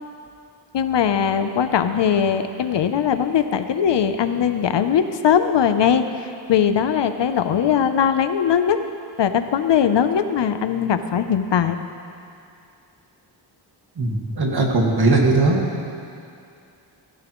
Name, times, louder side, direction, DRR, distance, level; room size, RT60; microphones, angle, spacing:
voice 1, 0.7-8.8 9.2-11.8, left 8 dB, 70° left, 9 dB, 0.7 m, -20 dB
voice 2, 14.0-15.6, right 3 dB, 55° right, -1 dB, 1.9 m, -19 dB
17.0 x 14.5 x 3.1 m, 2.5 s
wide cardioid pair, 145°, 45 cm